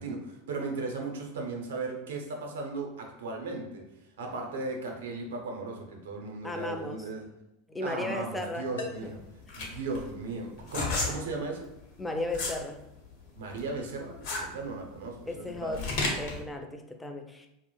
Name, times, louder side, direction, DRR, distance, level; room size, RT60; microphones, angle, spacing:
voice 1, 0.0-3.9 4.2-7.3 7.8-9.2 9.5-11.7 13.3-15.9, right 3 dB, 75° right, 2 dB, 0.5 m, -36 dB
voice 2, 6.4-7.0 7.7-8.7 9.0-9.1 12.0-12.9 15.3-15.9 16.2-17.5, left 2 dB, 10° left, 5 dB, 0.3 m, -35 dB
sound 1, 7.1-7.4 8.8-9.2 10.8-11.2, left 3 dB, 85° left, 0.4 m, -39 dB
sound 2, 9.0-12.6 13.0-16.4, left 3 dB, 60° left, 0.7 m, -33 dB
2.1 x 2.0 x 2.9 m, 0.88 s
hypercardioid pair, 90°, 0 cm